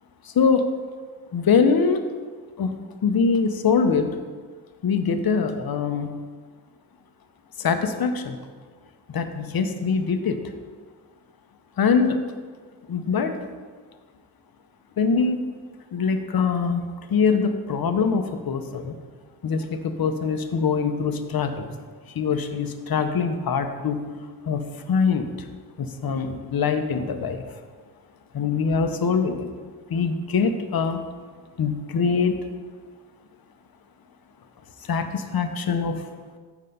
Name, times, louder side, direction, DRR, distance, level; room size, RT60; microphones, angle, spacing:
voice 1, 0.2-0.7 1.3-2.0 2.6-4.2 4.8-6.1 7.6-8.4 9.1-10.4 11.8-12.2 12.9-13.4 15.0-15.5 15.9-16.8 17.1-19.0 19.4-21.7 22.1-24.0 24.4-25.3 25.8-27.4 28.3-29.5 29.9-31.0 31.6-32.3 34.8-36.0, left 5 dB, 60° left, 7 dB, 0.8 m, -23 dB
7.7 x 4.8 x 5.4 m, 1.5 s
wide cardioid pair, 90°, 41 cm